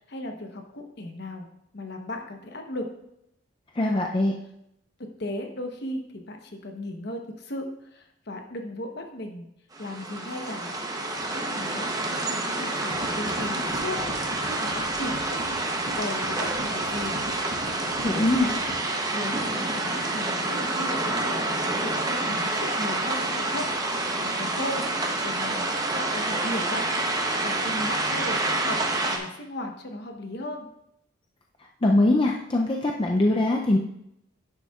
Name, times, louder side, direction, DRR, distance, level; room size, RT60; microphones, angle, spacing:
voice 1, 0.0-1.5 1.7-2.9 5.2-9.5 9.8-10.7 11.3-15.4 15.9-17.2 19.1-23.7 24.2-24.8 25.2-26.9 27.4-30.7, left 1 dB, 55° left, 4 dB, 0.9 m, -36 dB
voice 2, 3.8-4.3 18.0-18.5 31.8-33.8, left 2 dB, 25° left, 1 dB, 0.4 m, -22 dB
sound 1, 9.7-29.2, right 2 dB, 20° right, 0.8 m, -28 dB
sound 2, 12.9-18.8, right 1 dB, 70° right, 2.3 m, -40 dB
10.5 x 7.1 x 2.4 m, 0.80 s
head